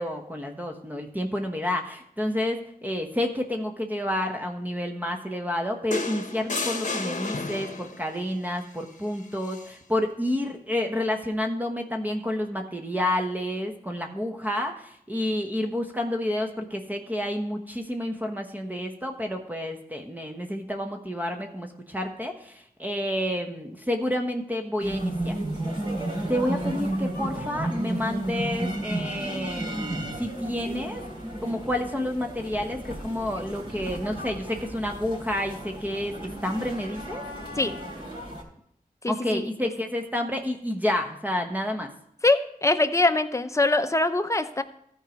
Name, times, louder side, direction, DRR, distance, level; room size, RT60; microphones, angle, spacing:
voice 1, 0.0-25.4 26.3-31.0 31.4-37.2 39.1-41.9, left 1 dB, 10° right, 3 dB, 1.1 m, -29 dB
sound 1, 5.9-8.0 9.4-9.7, left 3 dB, 55° left, 1.0 m, -31 dB
sound 2, 24.8-38.4, right 1 dB, 35° right, 3.3 m, -33 dB
voice 2, 39.0-39.5 42.2-44.6, left 2 dB, 20° left, 9 dB, 0.7 m, -23 dB
13.5 x 4.6 x 5.1 m, 0.71 s
cardioid pair, 50°, 15 cm